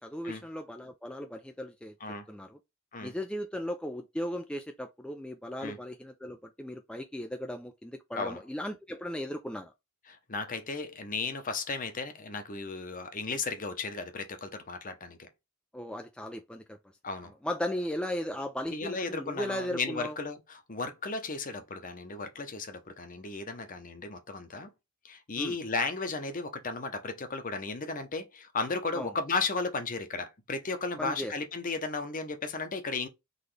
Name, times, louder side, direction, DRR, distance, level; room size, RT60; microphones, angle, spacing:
voice 1, 0.0-1.9 2.3-2.6 3.0-9.7 15.7-16.8 17.4-20.2 25.4-25.6 28.9-29.1 31.0-31.3, left 1 dB, 5° left, 0.3 m, -36 dB
voice 2, 10.1-15.3 17.0-17.3 18.7-24.7 25.0-33.1, left 4 dB, 40° left, 0.8 m, -35 dB
4.0 x 3.3 x 3.2 m
head